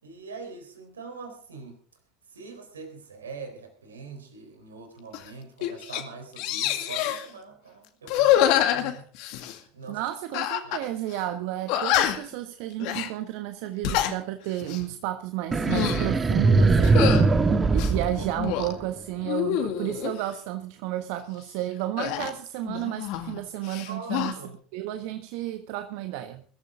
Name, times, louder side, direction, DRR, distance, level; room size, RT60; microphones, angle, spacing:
voice 1, 0.0-1.8 2.3-8.4 8.7-10.1 10.6-10.9 23.9-24.6, right 4 dB, 85° right, 4.1 m, -43 dB
sound 1, 5.1-5.3 5.6-6.0 6.4-7.2 8.0-9.6 10.3-10.8 11.1-11.2 11.7-12.3 12.8-13.1 13.7-14.1 14.6-14.9 15.5-16.1 16.8-17.2 17.7-18.7 19.2-20.2 22.0-23.4 23.6-24.3, left 11 dB, 60° left, 2.0 m, -26 dB
voice 2, 9.9-24.4 24.7-26.4, right 14 dB, 65° right, 1.3 m, -32 dB
sound 2, 15.5-19.0, right 3 dB, 25° right, 1.6 m, -21 dB
21.5 x 13.5 x 3.7 m
hypercardioid pair, 80°, 0 cm